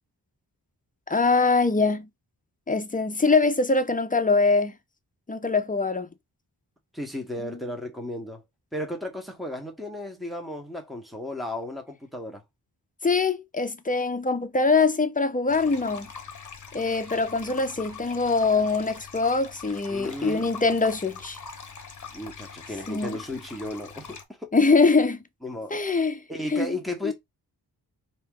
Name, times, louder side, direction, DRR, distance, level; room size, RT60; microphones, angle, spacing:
voice 1, 1.1-2.1 2.7-4.8 5.3-6.1 7.4-7.6 13.0-16.1 16.7-21.4 22.9-23.2 24.5-25.2 25.7-26.2 26.5-26.8 27.0-27.1, left 4 dB, 20° left, 0.6 m, -23 dB
voice 2, 6.9-8.4 8.7-12.4 19.9-20.5 22.1-24.5 25.4-25.8 26.3-27.1, left 1 dB, ahead, 1.2 m, -34 dB
sound 1, 15.5-24.2, left 5 dB, 50° left, 1.0 m, -43 dB
4.2 x 2.9 x 3.7 m
wide cardioid pair, 90°, 39 cm